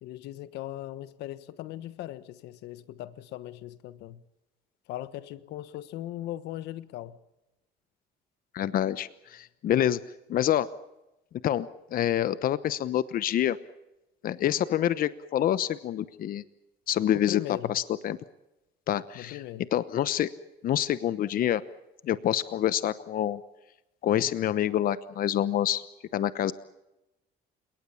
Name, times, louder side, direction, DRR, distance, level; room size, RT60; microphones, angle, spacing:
voice 1, 0.0-4.2 4.9-7.2 17.1-17.8 19.1-19.6, left 14 dB, 85° left, 1.3 m, -39 dB
voice 2, 8.5-10.0 10.3-10.7 11.4-13.6 14.2-16.4 16.9-18.2 18.9-19.4 19.7-20.3 20.6-21.6 22.0-23.4 24.0-25.8 26.1-26.5, left 11 dB, 55° left, 1.0 m, -27 dB
30.0 x 18.5 x 7.2 m
cardioid pair, 110°, 17 cm